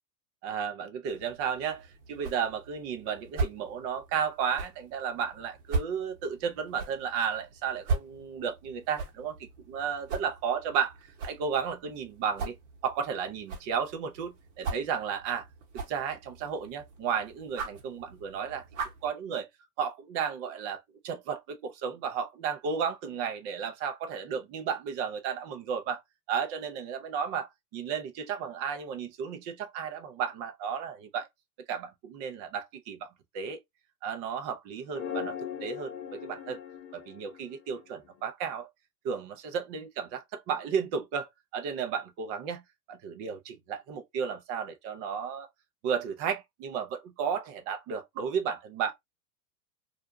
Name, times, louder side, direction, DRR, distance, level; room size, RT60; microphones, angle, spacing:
voice 1, 0.4-12.6 12.8-15.5 15.7-18.6 19.0-19.5 19.8-26.0 26.3-31.3 31.7-33.1 33.3-33.6 34.0-35.3 35.6-36.6 36.9-38.7 39.0-42.6 42.9-45.5 45.8-48.9, right 7 dB, 30° right, 0.5 m, -33 dB
sound 1, 1.1-19.1, right 3 dB, 50° right, 1.1 m, -39 dB
sound 2, 34.9-38.2, left 8 dB, 45° left, 0.8 m, -39 dB
2.5 x 2.0 x 2.6 m
hypercardioid pair, 105°, 48 cm